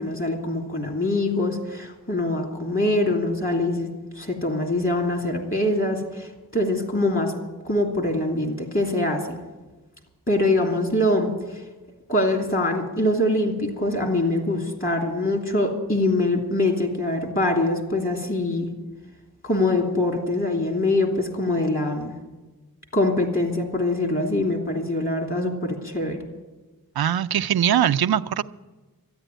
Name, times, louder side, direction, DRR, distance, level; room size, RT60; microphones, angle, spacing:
voice 1, 0.0-3.9 4.1-7.3 7.6-9.4 10.3-11.6 12.1-18.7 19.4-22.1 22.9-26.2, left 2 dB, 35° left, 2 dB, 2.8 m, -24 dB
voice 2, 27.0-28.4, right 10 dB, 75° right, 11 dB, 0.6 m, -21 dB
13.0 x 9.8 x 9.1 m, 1.2 s
wide cardioid pair, 70°, 37 cm